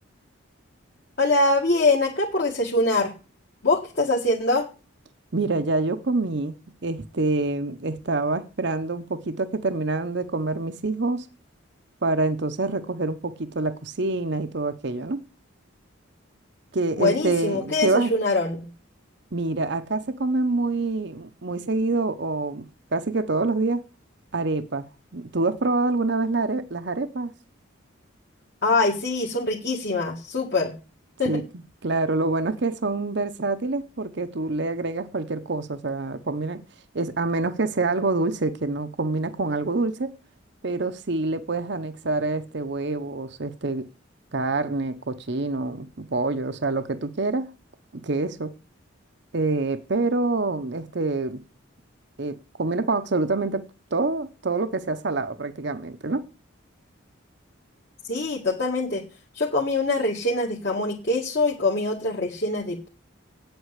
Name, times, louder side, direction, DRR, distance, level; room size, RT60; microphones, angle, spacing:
voice 1, 1.2-3.1 3.6-4.7 17.0-18.7 28.6-30.7 31.2-31.4 58.1-59.0 59.3-62.9, left 2 dB, 50° left, 1.8 m, -23 dB
voice 2, 5.3-11.3 12.0-15.2 16.7-18.1 19.3-22.6 22.9-23.8 24.3-24.8 25.1-27.3 31.2-31.4 31.8-36.6 36.9-40.1 40.6-43.9 44.3-47.5 48.0-48.5 49.3-51.4 52.2-53.6 53.9-56.2, right 3 dB, 55° right, 0.8 m, -26 dB
8.7 x 8.0 x 8.1 m
head